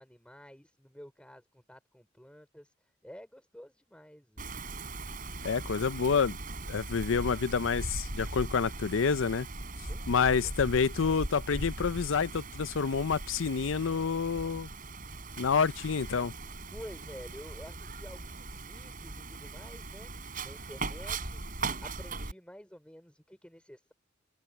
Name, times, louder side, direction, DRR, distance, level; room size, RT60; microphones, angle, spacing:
voice 1, 0.0-4.5 9.8-10.5 16.7-23.9, equal, 5° left, 5.3 m, -50 dB
Wind, 4.4-22.3, right 2 dB, 45° right, 5.6 m, -39 dB
voice 2, 5.4-6.4 6.7-9.5 10.1-14.7 15.4-16.3, left 5 dB, 70° left, 0.5 m, -28 dB
open air
head